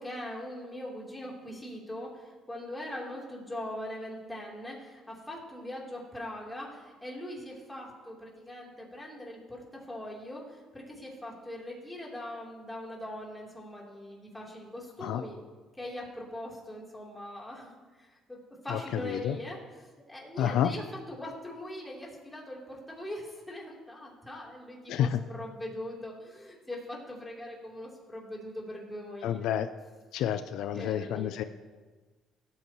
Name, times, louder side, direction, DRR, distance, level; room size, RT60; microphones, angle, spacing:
voice 1, 0.0-9.6 9.9-15.4 15.8-19.6 20.1-20.8 21.1-25.1 25.3-29.5 30.7-31.5, left 1 dB, 10° left, -3 dB, 3.5 m, -41 dB
voice 2, 18.7-19.4 20.4-20.7 24.9-25.2 29.2-29.7 30.1-31.4, left 10 dB, 80° left, 10 dB, 0.4 m, -29 dB
18.0 x 8.5 x 3.1 m, 1.4 s
cardioid pair, 95°, 0 cm